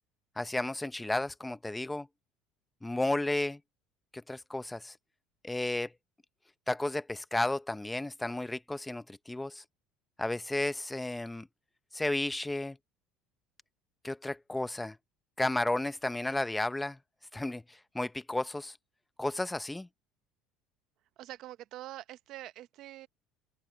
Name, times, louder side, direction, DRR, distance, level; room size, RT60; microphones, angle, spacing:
voice 1, 0.4-2.1 2.8-3.6 4.1-5.0 5.4-5.9 6.7-9.6 10.2-11.5 11.9-12.8 14.0-15.0 15.4-17.0 17.3-18.8 19.2-19.9, left 2 dB, 10° left, 0.7 m, -33 dB
voice 2, 21.2-23.1, right 15 dB, 55° right, 0.8 m, -45 dB
open air
cardioid pair, 125°, 0 cm